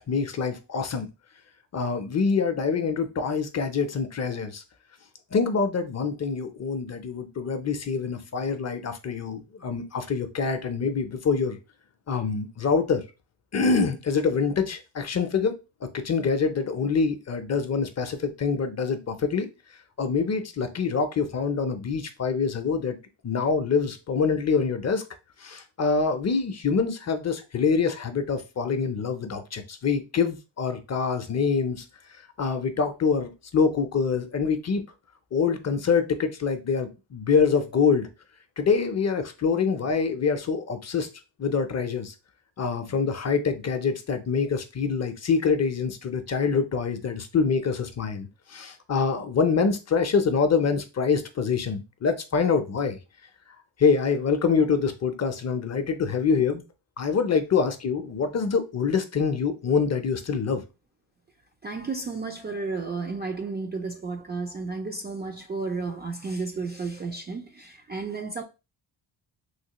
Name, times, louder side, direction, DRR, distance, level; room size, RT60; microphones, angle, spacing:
voice 1, 0.1-1.1 1.7-4.6 5.3-11.6 12.1-13.0 13.5-15.6 15.9-19.5 20.0-23.0 23.2-25.0 25.4-31.8 32.4-34.8 35.3-38.1 38.6-41.1 41.4-42.1 42.6-53.0 53.8-56.6 57.0-60.6, left 5 dB, 35° left, 0.5 m, -25 dB
voice 2, 61.6-68.4, right 4 dB, 25° right, 0.3 m, -32 dB
3.2 x 2.9 x 2.9 m
cardioid pair, 95°, 46 cm